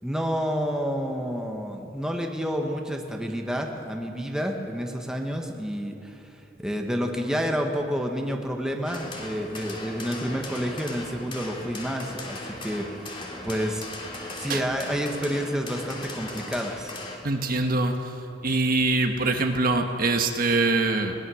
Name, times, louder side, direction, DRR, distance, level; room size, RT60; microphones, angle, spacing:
voice 1, 0.0-6.2 6.6-16.9, equal, 5° right, 2 dB, 1.4 m, -29 dB
sound 1, 8.8-17.2, left 2 dB, 30° left, 2.7 m, -38 dB
voice 2, 17.2-18.0 18.4-21.1, right 2 dB, 50° right, 4 dB, 1.5 m, -23 dB
21.5 x 19.5 x 6.4 m, 2.8 s
head